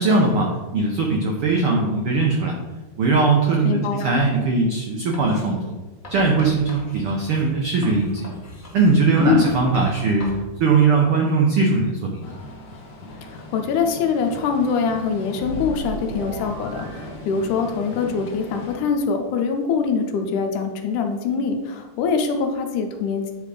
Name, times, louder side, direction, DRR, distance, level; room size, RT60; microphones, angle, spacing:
voice 1, 0.0-2.6 3.0-5.7 6.1-8.3 8.7-10.3 10.6-12.4, right 3 dB, 85° right, 0 dB, 1.2 m, -20 dB
voice 2, 3.6-4.1 9.2-9.5 13.2-23.3, left 5 dB, 80° left, 5 dB, 2.2 m, -23 dB
Writing, 5.1-5.5 6.0-10.4, left 1 dB, 25° left, 1.5 m, -39 dB
sound 1, 12.2-18.8, left 2 dB, 65° left, 1.1 m, -39 dB
sound 2, 15.3-17.9, right 2 dB, 65° right, 1.8 m, -35 dB
9.1 x 3.5 x 4.9 m, 1.2 s
omnidirectional pair, 3.6 m